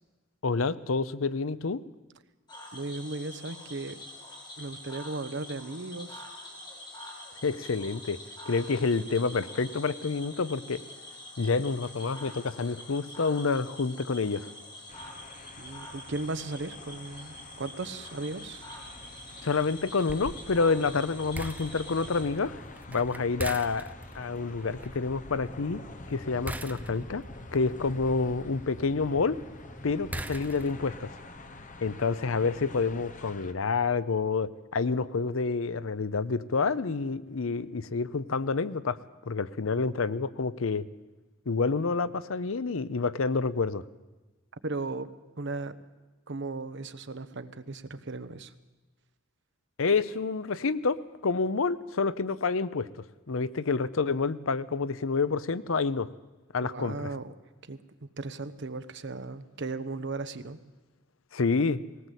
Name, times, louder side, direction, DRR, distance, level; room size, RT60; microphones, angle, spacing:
voice 1, 0.4-1.8 7.4-8.2 8.5-10.8 11.4-14.5 19.4-22.6 22.9-25.8 26.1-27.2 27.5-29.4 29.8-31.2 31.8-39.0 39.3-40.9 41.5-43.8 49.8-56.1 56.5-57.1 61.3-61.8, left 4 dB, 85° left, 16 dB, 0.7 m, -28 dB
Cricket / Frog, 2.5-22.2, left 1 dB, 20° left, 4.5 m, -46 dB
voice 2, 2.7-4.0 4.6-6.3 15.6-18.6 44.6-45.1 45.4-45.8 46.3-48.5 56.6-57.3 57.7-57.8 58.2-60.6, right 3 dB, 60° right, 11 dB, 1.0 m, -36 dB
sound 1, 14.9-33.5, left 2 dB, 40° left, 1.4 m, -47 dB
sound 2, 20.1-31.0, right 1 dB, 10° right, 0.9 m, -43 dB
19.5 x 18.0 x 8.2 m, 1.2 s
head